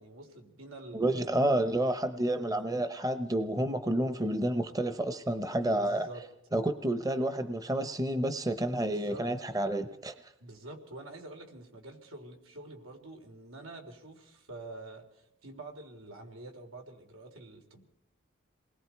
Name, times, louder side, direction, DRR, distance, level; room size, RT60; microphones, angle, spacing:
voice 1, 0.0-1.5 2.2-2.6 5.5-6.2 8.9-9.3 10.4-17.9, right 2 dB, 90° right, 3 dB, 3.8 m, -47 dB
voice 2, 0.9-6.1 6.5-10.1, right 1 dB, 15° right, 10 dB, 0.8 m, -30 dB
27.5 x 20.5 x 4.6 m, 0.79 s
head